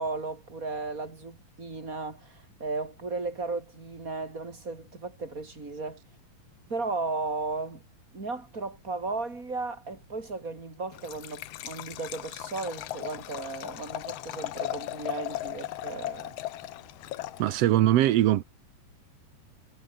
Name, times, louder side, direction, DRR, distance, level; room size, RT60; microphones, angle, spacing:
voice 1, 0.0-6.0 6.7-7.8 8.1-16.4, right 3 dB, 25° right, 4.5 m, -35 dB
Liquid, 10.9-17.8, left 14 dB, 85° left, 1.4 m, -37 dB
voice 2, 17.4-18.4, right 13 dB, 80° right, 1.4 m, -21 dB
omnidirectional pair, 4.0 m